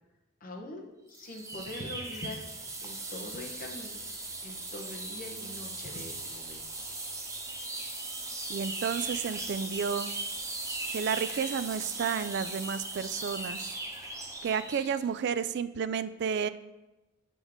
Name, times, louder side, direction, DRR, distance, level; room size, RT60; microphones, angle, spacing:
voice 1, 0.4-2.4 2.8-4.0 4.4-6.6, left 1 dB, 45° left, 1 dB, 1.0 m, -43 dB
sound 1, 1.1-15.0, right 2 dB, 15° right, 0.8 m, -38 dB
voice 2, 8.5-10.1 10.9-13.8 14.4-16.5, right 7 dB, 55° right, 14 dB, 0.3 m, -31 dB
7.6 x 5.4 x 3.6 m, 1.0 s
head